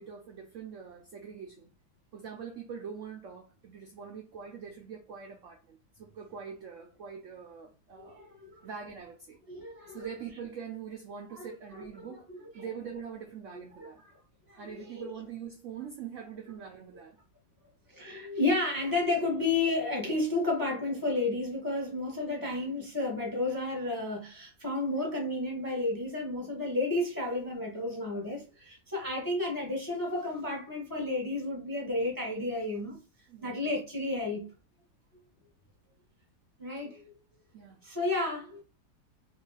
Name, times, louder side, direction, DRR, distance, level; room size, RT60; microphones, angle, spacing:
voice 1, 0.0-1.7 2.1-8.2 8.6-9.4 9.9-12.3 12.5-14.0 14.6-17.2 22.4-22.8 33.3-33.7 37.5-37.8, right 7 dB, 70° right, 0.7 m, -43 dB
voice 2, 8.0-8.7 9.5-10.1 11.3-11.8 12.1-12.2 12.6-12.7 13.5-13.9 14.5-15.1 17.9-33.0 33.4-34.5 36.6-37.1 37.8-38.6, left 2 dB, 20° left, 0.6 m, -32 dB
3.0 x 2.5 x 3.8 m
omnidirectional pair, 1.9 m